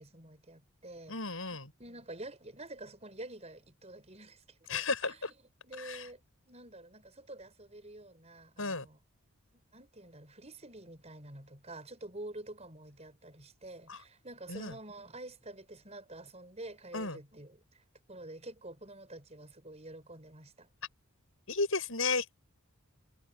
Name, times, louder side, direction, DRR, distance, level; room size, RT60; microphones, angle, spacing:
voice 1, 0.0-5.2 5.6-6.2 6.5-9.0 9.5-17.6 18.1-20.7, right 2 dB, 30° right, 5.9 m, -48 dB
voice 2, 1.1-1.7 4.7-5.3 5.8-6.0 8.6-8.9 13.9-14.0 14.5-14.7 16.9-17.2 21.5-22.5, left 4 dB, 65° left, 7.8 m, -34 dB
head